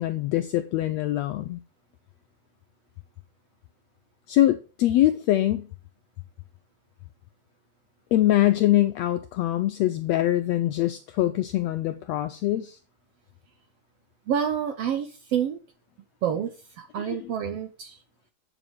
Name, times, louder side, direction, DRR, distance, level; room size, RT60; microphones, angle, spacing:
voice 1, 0.0-1.6 4.3-5.7 8.1-12.8 17.1-17.2, left 14 dB, 80° left, 1.5 m, -23 dB
voice 2, 14.3-15.6 16.2-18.0, right 8 dB, 70° right, 1.5 m, -28 dB
8.9 x 7.1 x 5.3 m
omnidirectional pair, 3.6 m